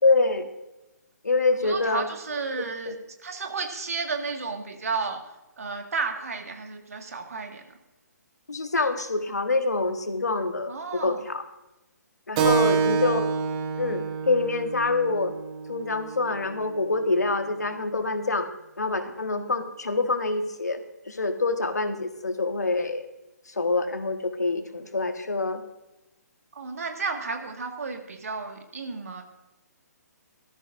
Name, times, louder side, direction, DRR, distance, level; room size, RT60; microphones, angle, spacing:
voice 1, 0.0-0.5 1.2-2.0 2.9-3.0 8.5-10.7 11.0-11.4 12.3-13.3 13.8-15.3 15.7-18.5 18.8-20.8 21.1-23.1 23.5-25.6, left 3 dB, 70° left, 7 dB, 1.5 m, -26 dB
voice 2, 1.6-3.0 3.2-7.8 10.7-11.3 12.4-12.7 26.5-29.2, right 4 dB, 55° right, 4 dB, 1.9 m, -33 dB
Keyboard (musical), 12.4-17.4, right 5 dB, 25° right, 1.2 m, -28 dB
18.0 x 13.5 x 2.6 m, 0.98 s
figure-of-eight pair, 135°, 9 cm